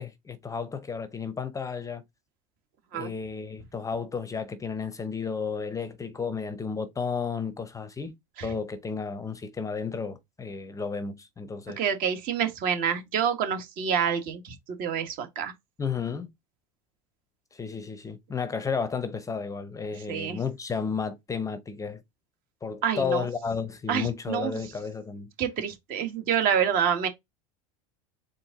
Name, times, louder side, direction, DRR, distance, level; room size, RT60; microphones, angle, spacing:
voice 1, 0.0-2.0 2.9-8.1 8.4-11.8 15.8-16.3 17.5-22.0 22.6-25.3, left 5 dB, 20° left, 0.6 m, -32 dB
voice 2, 11.8-15.5 20.1-20.4 22.8-23.3 23.9-24.6 25.4-27.1, right 8 dB, 55° right, 1.3 m, -27 dB
4.4 x 2.6 x 3.8 m
supercardioid pair, 100°, 18 cm